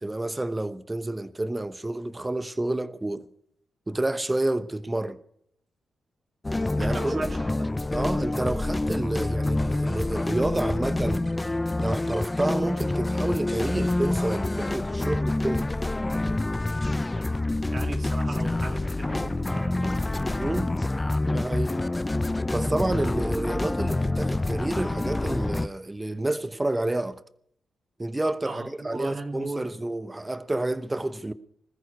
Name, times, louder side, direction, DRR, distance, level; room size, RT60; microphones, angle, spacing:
voice 1, 0.0-3.2 3.9-5.2 6.8-7.2 7.9-11.3 11.8-15.7 20.4-20.7 21.3-21.7 22.5-27.2 28.0-31.3, right 2 dB, 20° right, 1.0 m, -29 dB
sound 1, 6.4-25.7, left 2 dB, 20° left, 0.6 m, -27 dB
voice 2, 6.8-7.6 17.7-20.0 28.4-29.8, right 3 dB, 50° right, 2.4 m, -37 dB
20.0 x 14.5 x 4.7 m
cardioid pair, 65°, 0 cm